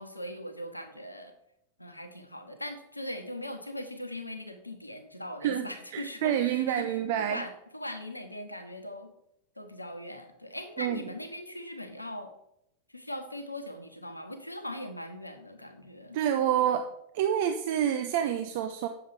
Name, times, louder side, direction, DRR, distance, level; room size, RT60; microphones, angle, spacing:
voice 1, 0.0-1.3 1.8-9.1 9.6-12.3 12.9-16.2, left 1 dB, 85° left, 7 dB, 1.1 m, -40 dB
voice 2, 5.4-7.4 10.8-11.0 16.1-16.9 17.1-18.9, right 10 dB, 50° right, 8 dB, 0.6 m, -28 dB
9.0 x 7.3 x 4.8 m, 0.79 s
figure-of-eight pair, 90°, 0 cm